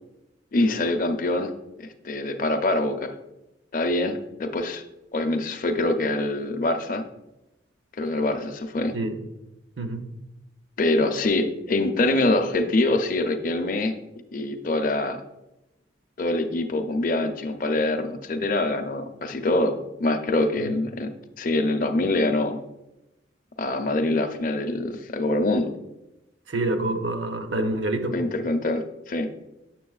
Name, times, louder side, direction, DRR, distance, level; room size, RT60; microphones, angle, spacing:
voice 1, 0.5-1.5 1.8-3.1 3.7-4.8 5.1-7.0 7.9-9.0 10.8-13.9 14.3-15.2 16.2-21.1 21.4-22.6 23.6-25.7 28.1-29.3, left 2 dB, 45° left, 7 dB, 0.5 m, -24 dB
voice 2, 26.5-28.1, right 2 dB, 75° right, 6 dB, 0.7 m, -27 dB
7.5 x 6.7 x 2.3 m, 0.93 s
head